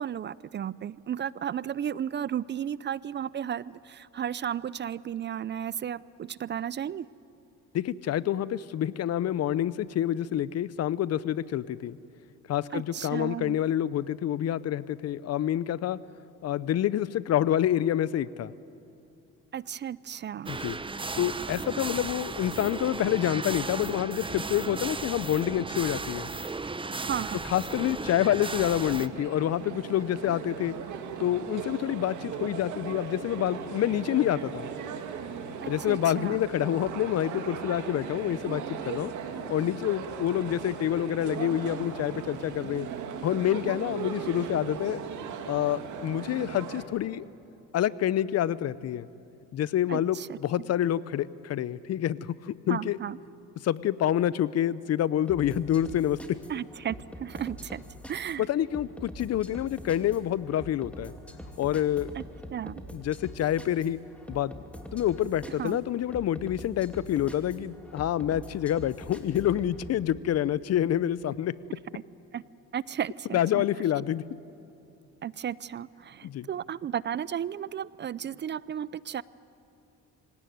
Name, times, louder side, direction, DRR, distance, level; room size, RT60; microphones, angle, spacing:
voice 1, 0.0-7.1 12.7-13.6 19.5-20.6 27.0-27.4 35.6-36.4 49.9-50.3 52.7-53.2 56.5-57.8 58.1-58.5 62.2-62.3 62.5-62.8 65.6-65.8 72.3-72.4 72.7-73.7 75.2-79.2, right 9 dB, 35° right, 21 dB, 0.5 m, -34 dB
voice 2, 7.7-12.0 12.5-16.0 16.4-18.5 20.5-20.8 21.2-26.3 27.5-30.7 31.2-34.7 35.7-39.1 39.5-42.9 43.2-45.0 45.5-47.2 47.7-49.1 49.5-53.0 53.6-56.4 58.4-61.1 61.6-62.2 62.9-64.0 64.3-64.6 64.9-71.5 73.3-74.2 76.2-76.5, left 11 dB, 55° left, 19 dB, 0.7 m, -27 dB
sound 1, 20.5-29.1, right 3 dB, 15° right, 0.8 m, -35 dB
sound 2, 28.0-46.8, right 7 dB, 70° right, 2.3 m, -38 dB
sound 3, 55.3-70.0, equal, 5° left, 2.8 m, -44 dB
25.5 x 17.0 x 9.4 m, 2.8 s
supercardioid pair, 85°, 31 cm